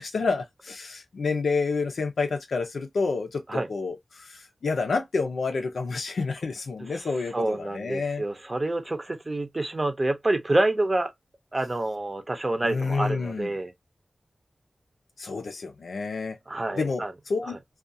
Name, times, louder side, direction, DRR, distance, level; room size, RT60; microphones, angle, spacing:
voice 1, 0.0-8.2 12.6-13.5 15.2-16.4 16.8-17.5, left 4 dB, 85° left, 0.6 m, -29 dB
voice 2, 6.8-11.1 11.5-13.7 16.5-17.1 17.4-17.6, right 2 dB, 25° right, 0.6 m, -28 dB
2.4 x 2.4 x 2.6 m
wide cardioid pair, 110°, 0 cm